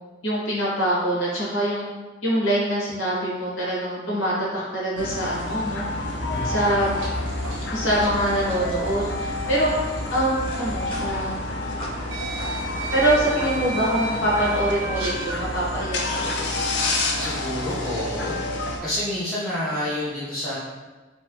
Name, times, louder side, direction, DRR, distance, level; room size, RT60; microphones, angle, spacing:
voice 1, 0.2-1.8 2.2-5.8 6.4-6.9 7.7-9.7 10.1-11.4 12.9-16.5, right 1 dB, 75° left, -6 dB, 1.3 m, -24 dB
sound 1, 5.0-18.8, left 2 dB, 60° left, 0.4 m, -29 dB
sound 2, 5.9-15.9, equal, 30° left, 0.9 m, -36 dB
voice 2, 6.3-6.8 17.2-18.4 18.8-20.6, left 1 dB, 5° left, -11 dB, 0.7 m, -29 dB
sound 3, 6.8-9.6 9.9-10.1 11.2-11.3 12.1-15.4, right 3 dB, 75° right, 0.6 m, -35 dB
3.2 x 3.1 x 3.0 m, 1.3 s
head